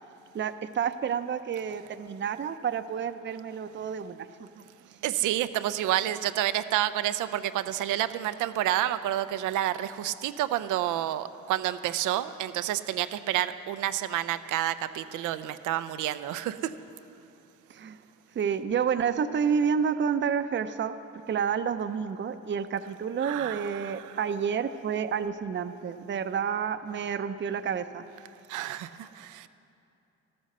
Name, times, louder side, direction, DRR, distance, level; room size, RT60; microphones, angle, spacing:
voice 1, 0.3-4.6 17.7-18.0 18.3-20.9 21.3-28.0, right 7 dB, 40° right, 10 dB, 0.6 m, -29 dB
voice 2, 5.0-16.7 23.2-24.2 28.5-29.5, right 13 dB, 90° right, 13 dB, 0.6 m, -29 dB
13.5 x 13.0 x 6.7 m, 2.7 s
cardioid pair, 90°, 30 cm